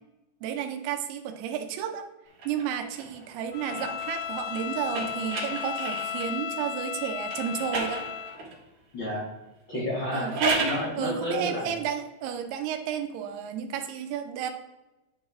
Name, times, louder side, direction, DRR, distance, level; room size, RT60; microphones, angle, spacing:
voice 1, 0.4-2.1 2.5-8.1 10.1-10.6 11.0-14.5, right 8 dB, 80° right, 6 dB, 2.7 m, -32 dB
sound 1, 2.3-6.4 7.2-8.6 10.0-10.9, right 3 dB, 55° right, 3.1 m, -33 dB
Bowed string instrument, 3.5-8.4, left 9 dB, 90° left, 2.6 m, -35 dB
voice 2, 8.9-9.3 9.7-11.8, left 1 dB, 35° left, -6 dB, 2.2 m, -31 dB
9.7 x 5.0 x 3.6 m, 1.0 s
omnidirectional pair, 4.6 m